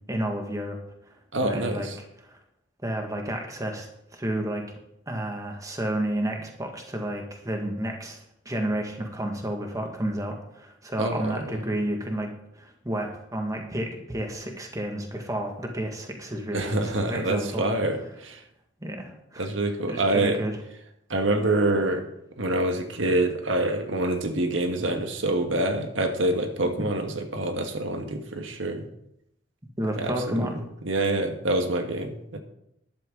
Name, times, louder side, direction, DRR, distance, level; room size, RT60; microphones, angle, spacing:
voice 1, 0.1-0.8 1.4-1.9 2.2-2.4 2.8-3.9 4.1-4.7 5.1-8.2 8.5-17.7 18.8-19.5 19.9-20.6 29.8-30.6, right 1 dB, 20° right, 2 dB, 1.9 m, -31 dB
voice 2, 1.3-2.0 11.0-11.4 16.5-18.4 19.4-20.4 21.1-22.0 22.4-28.9 30.0-30.4 30.8-32.4, right 2 dB, 85° right, 5 dB, 1.6 m, -26 dB
13.5 x 11.5 x 3.9 m, 0.77 s
head